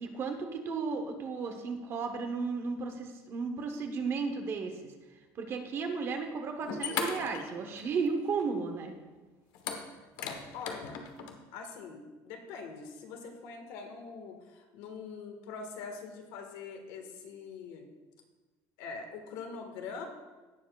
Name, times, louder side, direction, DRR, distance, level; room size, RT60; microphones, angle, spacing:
voice 1, 0.0-4.9 5.3-8.9, right 4 dB, 30° right, 5 dB, 0.9 m, -34 dB
sound 1, 6.2-6.3 6.6-8.1 8.4-8.5 9.5-11.4, left 6 dB, 60° left, 1.1 m, -37 dB
voice 2, 10.5-11.0 11.5-17.9 18.8-20.1, left 5 dB, 85° left, 4 dB, 1.6 m, -43 dB
16.5 x 7.2 x 2.4 m, 1.2 s
cardioid pair, 180°, 8 cm